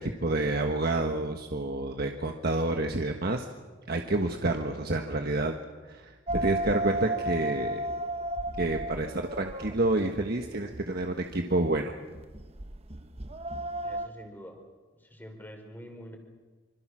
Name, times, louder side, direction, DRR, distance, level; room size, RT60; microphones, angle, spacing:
voice 1, 0.0-3.5 3.9-5.6 5.9-6.1 6.4-7.8 8.6-11.9, right 2 dB, 50° right, 4 dB, 1.4 m, -29 dB
sound 1, 6.3-14.1, right 1 dB, 30° right, 0.9 m, -34 dB
voice 2, 13.8-14.6 15.0-16.2, equal, 10° left, 4 dB, 4.1 m, -46 dB
26.0 x 26.0 x 6.3 m, 1.3 s
head